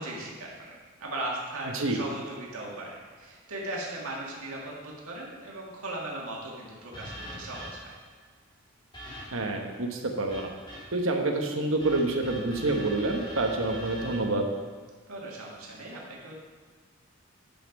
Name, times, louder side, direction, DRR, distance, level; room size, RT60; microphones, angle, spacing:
voice 1, 0.0-8.0 15.1-16.3, right 1 dB, 90° right, -3 dB, 2.0 m, -38 dB
sound 1, 6.9-8.0 8.9-9.6 10.3-11.1 11.8-14.2, equal, 20° left, 2.9 m, -42 dB
voice 2, 9.3-10.5 10.9-14.5, right 2 dB, 70° right, 3 dB, 1.1 m, -27 dB
10.0 x 5.6 x 5.3 m, 1.5 s
head